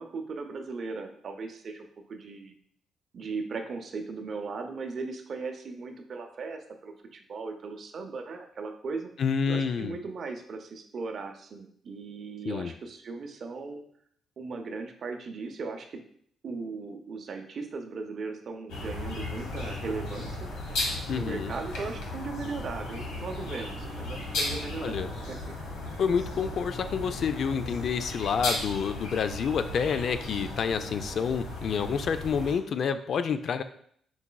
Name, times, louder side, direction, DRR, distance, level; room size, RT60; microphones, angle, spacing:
voice 1, 0.0-2.6 3.1-9.1 9.5-13.8 14.4-16.0 16.4-20.5 21.1-25.5, right 4 dB, 50° right, 5 dB, 0.5 m, -38 dB
voice 2, 9.2-9.9 12.5-12.7 21.1-21.5 24.8-25.1 26.0-33.6, left 6 dB, 60° left, 11 dB, 0.3 m, -28 dB
sound 1, 18.7-32.5, left 2 dB, 90° left, 1.1 m, -36 dB
4.6 x 3.9 x 2.2 m, 0.64 s
cardioid pair, 90°, 0 cm